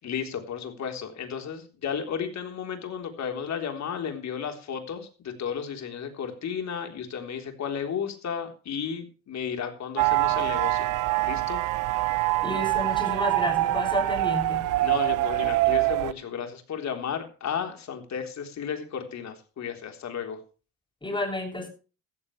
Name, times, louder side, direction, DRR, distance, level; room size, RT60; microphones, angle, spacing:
voice 1, 0.0-10.9 11.2-11.6 14.8-20.4, left 7 dB, 65° left, 5 dB, 3.8 m, -33 dB
sound 1, 10.0-16.1, right 18 dB, 90° right, 0.7 m, -25 dB
voice 2, 12.4-14.6 21.0-21.7, left 1 dB, 15° left, 5 dB, 7.0 m, -31 dB
15.0 x 14.0 x 3.3 m, 0.35 s
cardioid pair, 90°, 30 cm